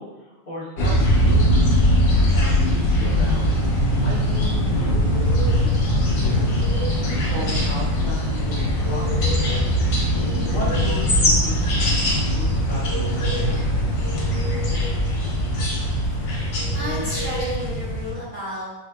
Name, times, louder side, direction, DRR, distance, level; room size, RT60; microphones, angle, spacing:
voice 1, 0.0-1.7 2.3-3.6 4.0-4.9 5.5-6.6 7.2-9.8 10.5-13.6, equal, 80° left, -7 dB, 0.4 m, -36 dB
sound 1, 0.8-18.1, equal, 60° left, 1.5 m, -21 dB
sound 2, 4.8-5.7 6.2-7.0 8.6-9.6 10.0-11.1 12.5-13.5 14.0-15.0 16.6-17.6, right 2 dB, 60° right, 1.1 m, -35 dB
voice 2, 16.2-18.7, equal, 45° left, -9 dB, 1.6 m, -33 dB
5.2 x 2.7 x 2.3 m, 1.1 s
omnidirectional pair, 2.4 m